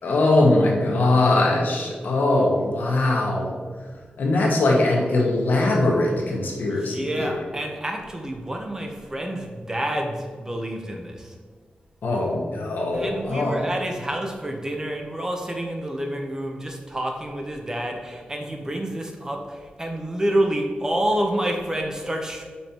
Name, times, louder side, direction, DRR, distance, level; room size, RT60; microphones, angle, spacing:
voice 1, 0.0-3.5 4.2-7.4 12.0-13.7, left 2 dB, 75° left, -1 dB, 1.3 m, -21 dB
voice 2, 6.7-11.3 12.9-22.4, right 1 dB, 20° right, 2 dB, 0.8 m, -28 dB
5.7 x 5.1 x 4.4 m, 1.5 s
wide cardioid pair, 130°, 3 cm